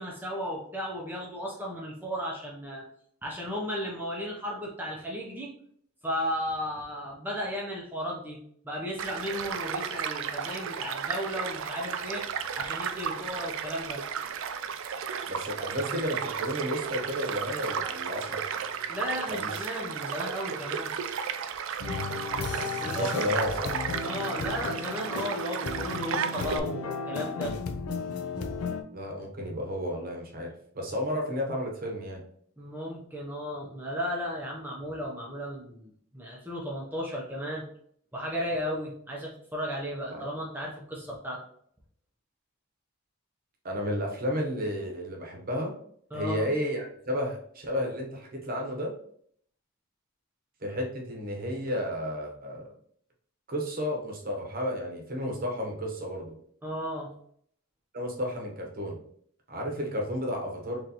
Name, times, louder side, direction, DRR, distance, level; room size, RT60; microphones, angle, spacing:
voice 1, 0.0-2.8 3.2-5.5 6.0-8.4 8.6-12.2 12.5-14.0 18.9-20.9 22.8-23.1 24.0-27.5 32.6-37.6 38.1-41.4 46.1-46.5 56.6-57.1, equal, 10° right, -3 dB, 0.6 m, -34 dB
Child speech kid speaking / Stream / Car passing by, 9.0-26.6, right 7 dB, 60° right, 0.3 m, -34 dB
voice 2, 15.3-18.5 19.3-19.5 22.8-23.8 28.9-32.2 40.1-40.3 43.6-45.7 46.1-48.9 50.6-52.7 53.5-56.3 57.9-59.0 59.5-60.8, equal, 40° right, 1 dB, 0.9 m, -32 dB
sound 1, 21.8-28.8, left 4 dB, 85° left, 0.5 m, -34 dB
3.9 x 3.1 x 2.8 m, 0.63 s
head